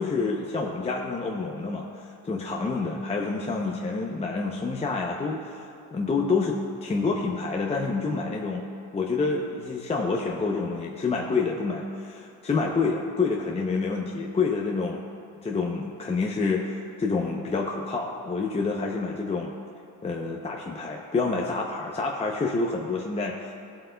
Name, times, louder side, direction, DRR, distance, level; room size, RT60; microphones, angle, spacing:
voice 1, 0.0-8.6 8.9-15.0 15.4-19.5 20.0-23.6, left 4 dB, 15° left, -1 dB, 0.6 m, -28 dB
16.0 x 7.6 x 2.3 m, 2.6 s
cardioid pair, 125°, 38 cm